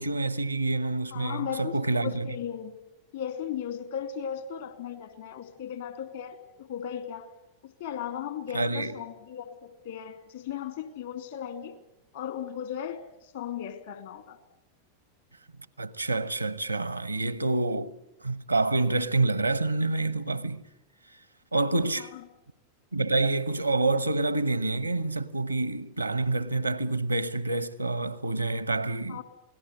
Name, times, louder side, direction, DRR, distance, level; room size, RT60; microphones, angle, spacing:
voice 1, 0.0-2.3 8.5-9.0 15.8-17.9 18.2-20.6 21.5-22.1 22.9-29.2, right 2 dB, 85° right, 1.0 m, -27 dB
voice 2, 1.1-2.8 3.1-7.3 7.6-11.8 12.1-14.4 22.0-22.2 29.1-29.2, left 9 dB, 60° left, 2.7 m, -36 dB
28.0 x 19.0 x 8.4 m
figure-of-eight pair, 90°, 0 cm